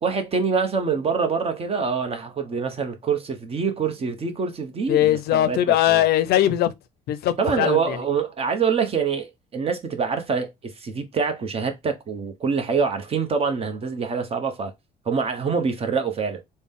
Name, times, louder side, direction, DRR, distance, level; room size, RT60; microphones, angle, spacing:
voice 1, 0.0-5.6 5.9-6.0 7.4-10.5 10.8-14.7 15.1-16.4, right 5 dB, 35° right, 0.8 m, -25 dB
voice 2, 4.9-6.7 7.1-8.0, left 12 dB, 70° left, 0.4 m, -20 dB
3.9 x 2.1 x 3.5 m
cardioid pair, 110°, 17 cm